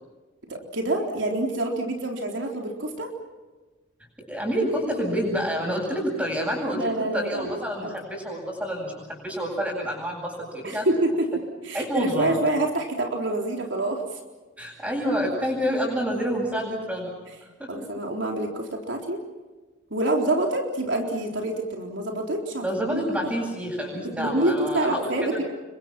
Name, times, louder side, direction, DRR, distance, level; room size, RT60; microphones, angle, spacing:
voice 1, 0.5-3.1 6.7-7.5 7.8-7.9 10.6-14.0 17.7-19.2 19.9-23.3 24.0-25.4, right 2 dB, 70° right, 1 dB, 3.9 m, -27 dB
voice 2, 4.3-10.8 11.7-12.4 14.6-17.1 17.6-17.9 22.6-25.4, equal, 10° right, -7 dB, 7.8 m, -28 dB
29.5 x 24.0 x 6.1 m, 1.2 s
head